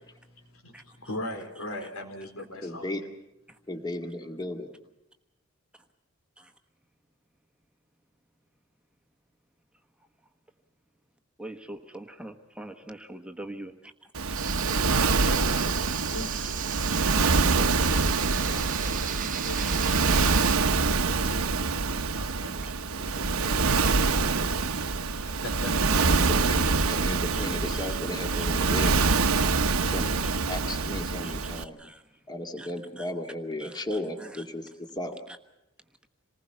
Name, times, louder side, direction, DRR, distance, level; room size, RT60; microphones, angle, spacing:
voice 1, 0.1-2.9 14.7-15.7 16.0-16.7 17.3-22.5 22.9-24.3 24.6-25.8, left 1 dB, 80° left, 5 dB, 4.0 m, -41 dB
voice 2, 2.6-3.0 3.7-4.7 26.0-29.0 29.8-30.2 30.5-31.8 32.3-34.7 35.0-35.2, left 1 dB, 20° left, 4 dB, 2.1 m, -35 dB
voice 3, 11.4-13.9 22.6-22.7 27.3-27.4 27.7-27.9 28.4-28.5 29.1-29.2 31.2-32.0 32.6-32.7 33.0-33.1 33.6-34.4, right 1 dB, 5° right, 5 dB, 1.3 m, -43 dB
Waves surf, 14.1-31.6, right 4 dB, 90° right, 1.0 m, -25 dB
sound 1, 14.3-20.6, right 10 dB, 40° right, 0.9 m, -36 dB
27.5 x 20.0 x 5.7 m, 0.90 s
head